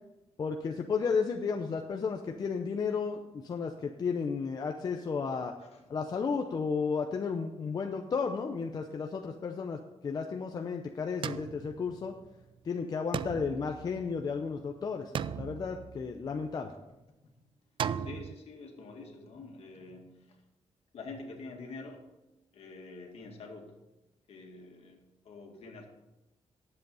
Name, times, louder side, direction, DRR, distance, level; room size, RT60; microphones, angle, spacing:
voice 1, 0.4-5.5 5.9-12.1 12.7-15.1 15.4-16.7, left 5 dB, 35° left, 4 dB, 0.6 m, -33 dB
sound 1, 11.2-12.4 13.1-14.6 15.1-16.5 17.8-18.3, right 8 dB, 50° right, 0.3 m, -37 dB
voice 2, 18.0-20.4 20.9-22.0 22.5-23.7 24.3-25.9, left 3 dB, 65° left, 2 dB, 2.1 m, -47 dB
10.5 x 7.8 x 5.5 m, 0.99 s
wide cardioid pair, 175°, 11 cm